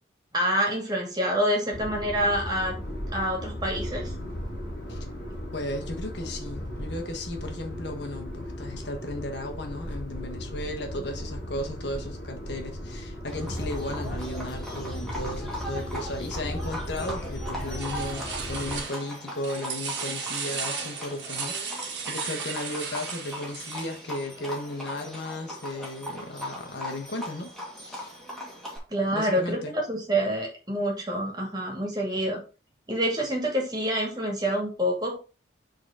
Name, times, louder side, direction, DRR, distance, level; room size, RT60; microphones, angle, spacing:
voice 1, 0.3-2.8 3.1-4.1 28.9-32.4 32.9-35.2, equal, 20° right, 2.3 m, -27 dB
sound 1, 1.7-18.8, equal, 50° left, 2.3 m, -36 dB
voice 2, 5.5-27.5 27.8-28.2 29.1-29.7, left 1 dB, 65° left, 1.4 m, -35 dB
Livestock farm animals working animals, 13.3-28.8, equal, ahead, 2.1 m, -39 dB
sound 2, 17.7-19.2 19.4-24.1, right 6 dB, 70° right, 1.7 m, -35 dB
6.6 x 4.0 x 5.0 m
head